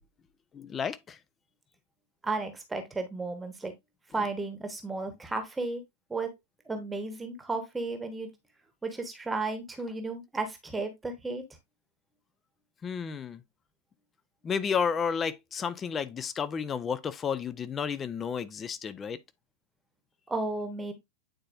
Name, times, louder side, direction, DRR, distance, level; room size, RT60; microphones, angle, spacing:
voice 1, 0.5-1.2 12.8-13.4 14.4-19.2, left 6 dB, 20° left, 0.6 m, -32 dB
voice 2, 2.2-3.7 4.1-5.8 6.1-6.3 6.7-8.3 8.8-11.4 20.3-20.9, right 3 dB, 10° right, 1.2 m, -33 dB
9.0 x 4.3 x 2.5 m
figure-of-eight pair, 90°, 0 cm